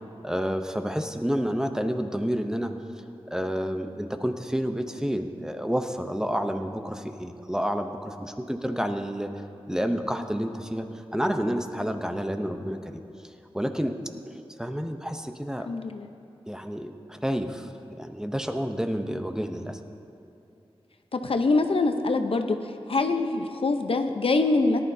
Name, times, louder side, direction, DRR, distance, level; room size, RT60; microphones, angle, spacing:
voice 1, 0.2-9.3 9.7-10.9 11.1-13.0 13.5-14.0 14.3-15.7 16.5-19.8, equal, 5° right, 6 dB, 0.7 m, -29 dB
voice 2, 15.7-16.1 21.1-22.6 22.9-24.8, left 3 dB, 65° left, 6 dB, 0.7 m, -24 dB
18.0 x 11.0 x 2.7 m, 2.8 s
wide cardioid pair, 80°, 10 cm